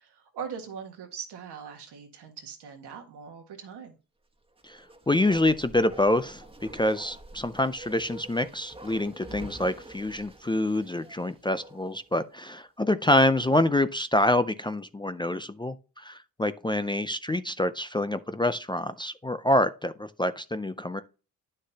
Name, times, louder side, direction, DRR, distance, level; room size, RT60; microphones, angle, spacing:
voice 1, 0.0-4.0, right 7 dB, 85° right, 1.7 m, -41 dB
Bark, 4.5-12.1 12.4-12.5, right 2 dB, 15° right, 1.3 m, -47 dB
voice 2, 5.1-6.4 6.7-21.0, left 1 dB, 15° left, 0.4 m, -26 dB
9.6 x 6.4 x 2.8 m
cardioid pair, 105°, 39 cm